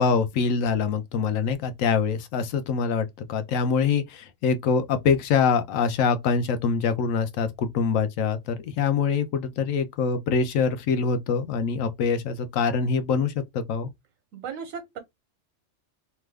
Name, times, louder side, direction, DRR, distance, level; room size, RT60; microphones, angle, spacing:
voice 1, 0.0-13.9, left 5 dB, 85° left, 1.0 m, -24 dB
voice 2, 14.3-15.0, right 6 dB, 85° right, 1.1 m, -36 dB
3.0 x 2.3 x 3.3 m
omnidirectional pair, 1.3 m